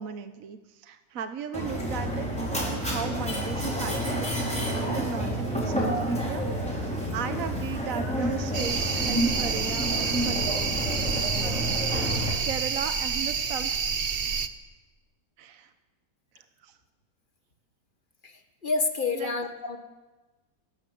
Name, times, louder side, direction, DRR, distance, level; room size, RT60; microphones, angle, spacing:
voice 1, 0.0-6.8 7.1-10.8 11.4-11.6 12.4-13.8 15.4-15.7 16.6-16.7 19.1-19.4, right 7 dB, 55° right, 9 dB, 1.3 m, -36 dB
Mechanisms, 1.5-12.3, equal, 5° left, 5.9 m, -29 dB
sound 1, 8.5-14.5, right 6 dB, 40° right, 1.0 m, -28 dB
voice 2, 18.6-19.8, left 4 dB, 30° left, 6 dB, 1.8 m, -28 dB
29.0 x 13.0 x 7.8 m, 1.2 s
omnidirectional pair, 1.8 m